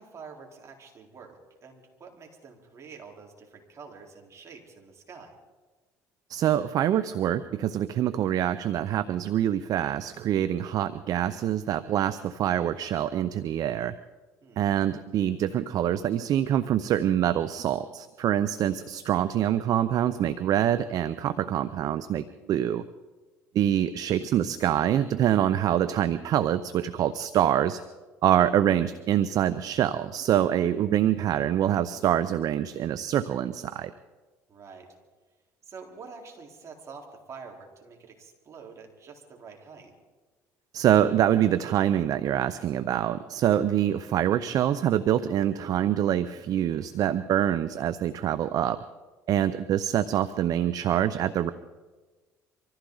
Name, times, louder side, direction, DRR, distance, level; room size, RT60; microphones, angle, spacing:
voice 1, 0.0-5.4 14.4-14.7 34.5-34.9 35.6-39.9, right 5 dB, 45° right, 0 dB, 3.9 m, -47 dB
voice 2, 6.3-13.9 14.6-22.8 23.5-27.8 28.2-33.9 40.7-48.8 49.3-51.5, right 11 dB, 60° right, 14 dB, 0.6 m, -25 dB
25.0 x 15.0 x 3.9 m, 1.3 s
supercardioid pair, 80°, 7 cm